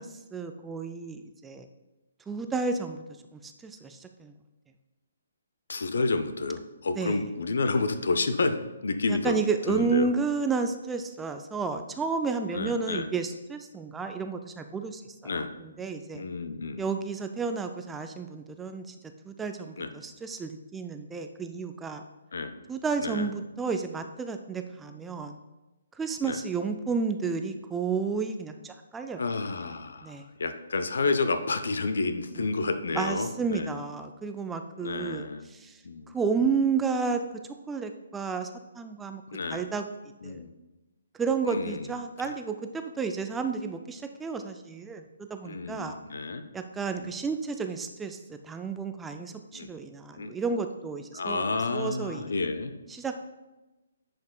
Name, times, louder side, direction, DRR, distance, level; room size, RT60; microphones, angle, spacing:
voice 1, 0.0-1.7 2.3-3.0 3.3-4.3 7.0-7.2 9.1-16.2 16.8-19.0 19.3-22.0 22.7-25.4 25.9-29.2 30.0-30.3 32.3-32.5 32.9-37.2 37.7-38.5 38.7-39.2 39.5-39.9 40.2-40.5 41.2-46.0 46.5-51.5 51.7-52.3 52.9-53.2, right 5 dB, 10° right, 6 dB, 0.3 m, -31 dB
voice 2, 5.7-8.6 8.8-9.4 9.7-10.1 12.5-13.1 15.2-15.5 16.1-16.8 19.8-19.9 22.3-22.5 23.0-23.3 26.2-26.4 29.2-33.8 34.8-35.5 35.8-36.1 39.3-39.6 40.2-40.5 41.5-41.9 42.2-42.3 45.4-46.4 47.0-47.1 49.5-49.7 50.2-50.3 51.1-52.7, left 3 dB, 60° left, 9 dB, 0.6 m, -30 dB
10.5 x 5.2 x 2.3 m, 1.1 s
figure-of-eight pair, 135°, 0 cm